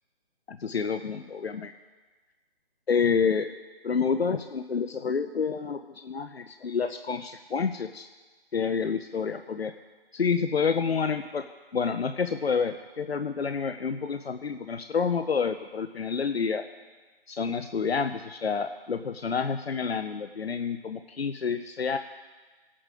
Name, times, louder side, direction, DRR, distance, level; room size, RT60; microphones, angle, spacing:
voice 1, 0.5-1.7 2.9-3.5 3.8-8.1 8.5-9.7 10.1-11.4 11.7-16.6 17.3-22.0, left 5 dB, 90° left, 8 dB, 0.7 m, -28 dB
19.5 x 8.7 x 3.8 m, 1.3 s
figure-of-eight pair, 160°, 30 cm